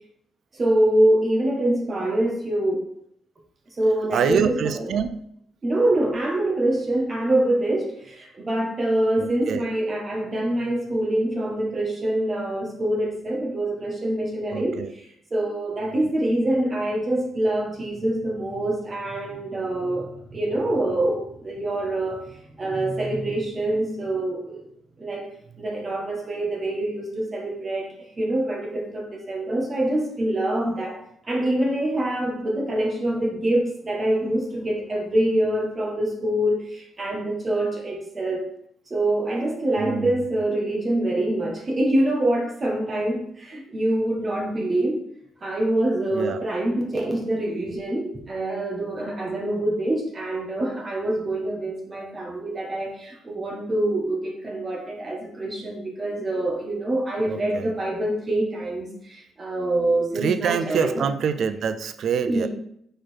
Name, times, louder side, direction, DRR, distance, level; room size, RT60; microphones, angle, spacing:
voice 1, 0.5-2.9 3.8-4.9 5.6-15.0 15.3-24.6 25.0-38.5 38.9-45.0 45.4-60.9 62.2-62.5, right 1 dB, 35° right, 0 dB, 1.5 m, -25 dB
voice 2, 4.1-5.2 9.2-9.6 14.5-14.9 39.8-40.2 46.1-46.4 57.3-57.7 60.2-62.5, right 7 dB, 65° right, 11 dB, 0.5 m, -26 dB
5.0 x 4.4 x 4.4 m, 0.71 s
cardioid pair, 90°, 0 cm